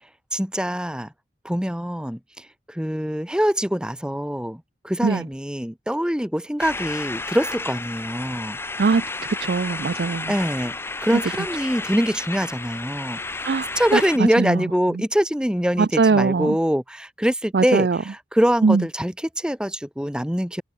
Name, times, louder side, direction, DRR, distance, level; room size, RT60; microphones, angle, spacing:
voice 1, 0.3-1.1 1.4-8.6 10.3-13.4 13.7-20.6, equal, 5° right, 1.1 m, -24 dB
sound 1, 6.6-14.2, left 3 dB, 15° left, 0.6 m, -32 dB
voice 2, 9.4-10.3 13.4-14.6 15.8-16.6 17.5-18.0 18.6-18.8, right 4 dB, 65° right, 0.4 m, -21 dB
head